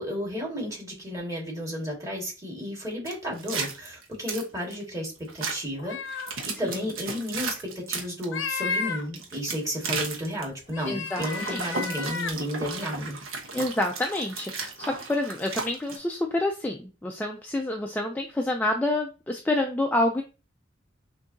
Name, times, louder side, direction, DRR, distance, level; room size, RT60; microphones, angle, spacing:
voice 1, 0.0-6.0 6.4-13.2, equal, 15° right, -3 dB, 1.8 m, -33 dB
sound 1, 3.1-4.8 5.3-5.5 6.1-8.2 9.1-10.4 11.1-16.0, right 4 dB, 80° right, 1.0 m, -34 dB
sound 2, 5.8-6.4 8.2-9.0 10.7-12.3, left 4 dB, 70° left, 0.7 m, -32 dB
voice 2, 10.8-11.2 11.5-11.6 13.5-20.2, left 1 dB, 10° left, 2 dB, 0.3 m, -28 dB
5.9 x 2.7 x 2.7 m, 0.32 s
head